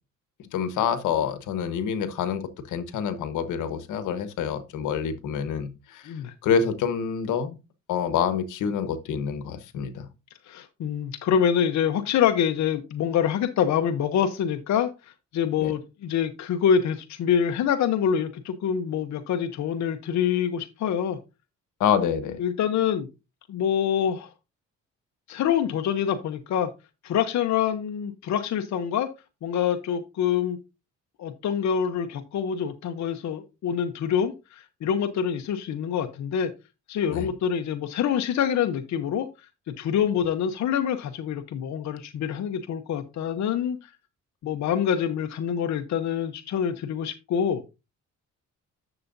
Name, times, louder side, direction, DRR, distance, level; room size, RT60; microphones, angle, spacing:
voice 1, 0.5-6.1 6.4-7.6 7.9-10.1 15.6-15.7 21.8-22.4 37.1-37.3, left 7 dB, 85° left, 1.3 m, -27 dB
voice 2, 10.5-21.2 22.4-23.1 23.5-24.3 25.3-26.7 27.0-29.1 29.4-30.6 31.2-36.5 36.9-39.3 39.7-43.9 44.4-47.6, left 8 dB, 65° left, 0.9 m, -26 dB
11.0 x 6.9 x 2.6 m
cardioid pair, 90°, 30 cm